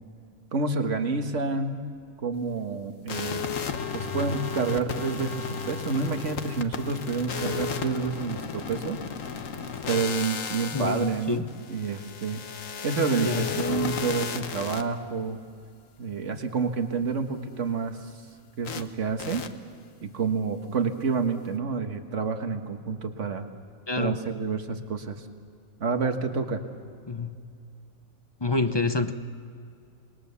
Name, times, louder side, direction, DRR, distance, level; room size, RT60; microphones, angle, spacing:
voice 1, 0.5-1.9 2.2-3.4 3.9-9.0 9.9-12.4 12.8-15.4 16.0-18.0 18.6-19.5 20.0-23.4 24.0-25.3 25.8-26.6, right 4 dB, 60° right, 6 dB, 1.8 m, -29 dB
sound 1, 3.1-14.8 18.6-18.8 19.2-19.5, left 6 dB, 70° left, 1.5 m, -34 dB
voice 2, 10.7-11.5 13.1-13.5 23.9-24.2 27.1-27.4 28.4-29.1, left 3 dB, 25° left, 10 dB, 0.6 m, -27 dB
26.5 x 21.0 x 7.0 m, 2.3 s
omnidirectional pair, 1.5 m